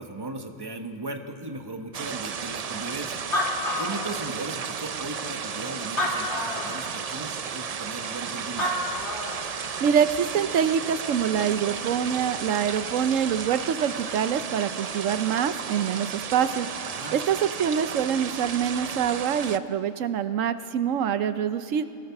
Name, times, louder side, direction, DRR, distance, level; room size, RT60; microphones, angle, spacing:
voice 1, 0.0-3.2 3.8-9.0 16.8-17.2, right 2 dB, 20° right, 5 dB, 1.2 m, -37 dB
sound 1, 1.9-19.6, right 6 dB, 45° right, 0.5 m, -34 dB
Animal, 2.9-3.0 3.1-4.6 5.2-5.3 5.8-6.8 8.3-8.4 8.6-9.5, left 1 dB, 60° left, 3.1 m, -29 dB
voice 2, 9.8-16.7 17.1-21.9, right 8 dB, 85° right, 11 dB, 1.1 m, -25 dB
28.0 x 18.0 x 6.0 m, 2.5 s
omnidirectional pair, 1.3 m